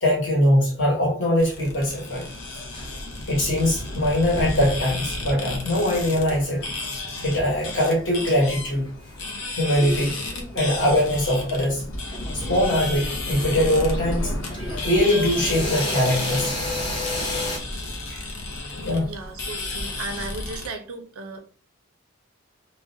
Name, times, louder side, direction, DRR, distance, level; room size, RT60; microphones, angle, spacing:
voice 1, 0.0-2.2 3.3-6.6 7.2-8.9 9.6-10.2 10.5-11.8 12.3-14.3 14.8-16.5 18.1-18.2 18.7-19.1, left 1 dB, 55° left, -2 dB, 1.0 m, -22 dB
sound 1, 1.4-20.7, left 2 dB, 80° left, 0.6 m, -32 dB
sound 2, 2.1-9.2 9.5-10.8 11.7-11.8 12.1-17.6, left 2 dB, 25° left, 0.5 m, -34 dB
voice 2, 19.0-21.4, right 3 dB, 90° right, 6 dB, 0.5 m, -35 dB
2.3 x 2.1 x 2.6 m, 0.42 s
head